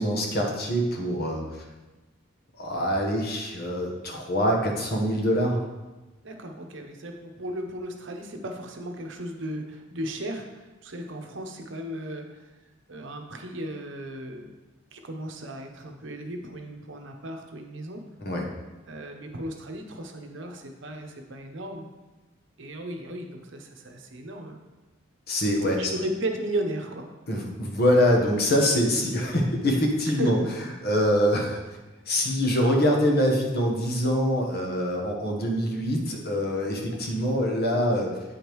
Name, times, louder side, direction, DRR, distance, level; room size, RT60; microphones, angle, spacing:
voice 1, 0.0-1.6 2.6-5.6 18.2-18.5 25.3-25.9 27.3-30.4 30.8-31.6 32.1-38.2, equal, 50° left, 0 dB, 1.1 m, -24 dB
voice 2, 6.2-12.4 12.9-14.5 14.9-18.0 18.9-21.9 22.6-24.6 25.8-27.1 30.0-30.5, right 1 dB, 65° right, 3 dB, 0.8 m, -35 dB
8.5 x 5.1 x 3.1 m, 1.1 s
head